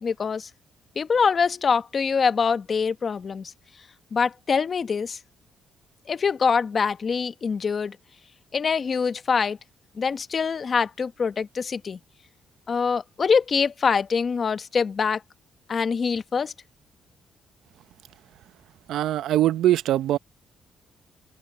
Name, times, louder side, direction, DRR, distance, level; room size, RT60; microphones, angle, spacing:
voice 1, 0.0-0.5 1.0-3.5 4.1-5.2 6.1-8.0 8.5-9.6 10.0-12.0 12.7-15.2 15.7-16.5, left 5 dB, 45° left, 1.1 m, -24 dB
voice 2, 18.9-20.2, right 13 dB, 80° right, 0.7 m, -22 dB
cardioid pair, 90°, 0 cm